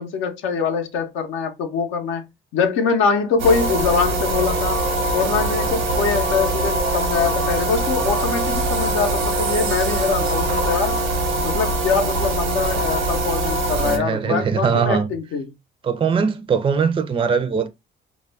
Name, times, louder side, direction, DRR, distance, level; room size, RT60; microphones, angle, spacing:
voice 1, 0.0-2.2 2.5-4.8 5.1-11.0 11.4-15.5, left 5 dB, 85° left, 0.6 m, -23 dB
sound 1, 3.4-14.0, right 2 dB, 80° right, 0.9 m, -22 dB
voice 2, 13.8-15.1 15.8-17.7, right 6 dB, 25° right, 0.4 m, -21 dB
2.3 x 2.0 x 3.2 m
cardioid pair, 90°, 20 cm